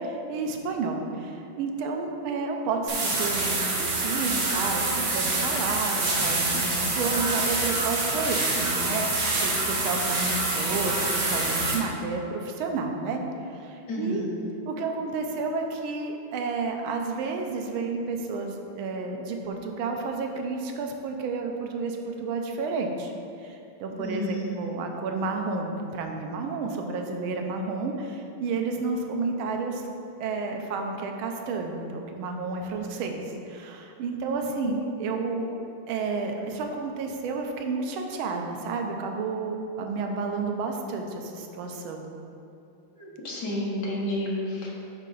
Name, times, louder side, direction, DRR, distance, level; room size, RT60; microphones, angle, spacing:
voice 1, 0.0-13.2 13.5-14.2 14.7-23.1 23.4-29.8 30.2-33.1 33.5-35.6 35.9-42.1, right 4 dB, 80° right, 3 dB, 1.5 m, -31 dB
sound 1, 2.9-11.7, right 2 dB, 45° right, 1.1 m, -26 dB
voice 2, 13.9-14.3 24.0-24.7 34.6-34.7 42.9-44.7, left 1 dB, 55° left, -4 dB, 1.7 m, -31 dB
9.8 x 3.7 x 3.9 m, 2.7 s
omnidirectional pair, 2.3 m